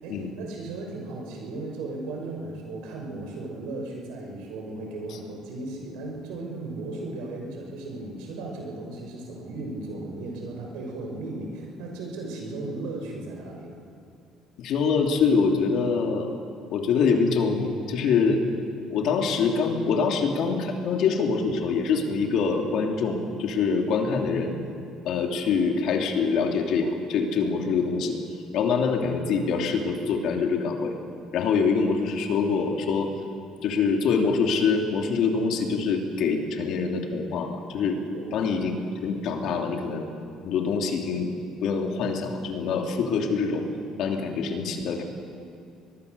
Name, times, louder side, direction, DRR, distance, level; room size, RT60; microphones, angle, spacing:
voice 1, 0.0-13.8 38.1-38.5, right 2 dB, 85° right, 1 dB, 6.1 m, -36 dB
voice 2, 14.6-16.3 16.7-18.4 18.9-24.6 25.0-28.2 28.5-30.9 31.3-33.1 33.6-38.0 38.3-38.7 39.0-40.1 40.4-41.3 41.6-43.7 44.0-45.0, left 5 dB, 60° left, 3 dB, 2.9 m, -25 dB
24.0 x 20.5 x 6.9 m, 2.6 s
cardioid pair, 140°, 0 cm